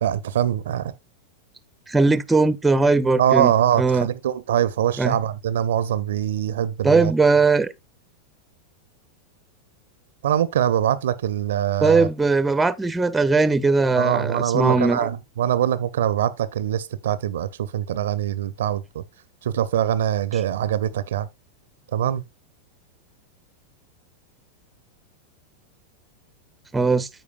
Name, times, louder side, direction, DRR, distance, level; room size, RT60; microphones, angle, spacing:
voice 1, 0.0-0.9 3.2-7.1 10.2-12.1 14.0-19.0 19.4-21.3 21.9-22.2, right 10 dB, 60° right, 0.5 m, -23 dB
voice 2, 1.9-3.5 3.8-4.1 5.0-5.2 6.8-7.7 11.8-15.1 26.7-27.1, right 3 dB, 10° right, 0.5 m, -19 dB
13.5 x 4.7 x 2.3 m
figure-of-eight pair, 90°, 0 cm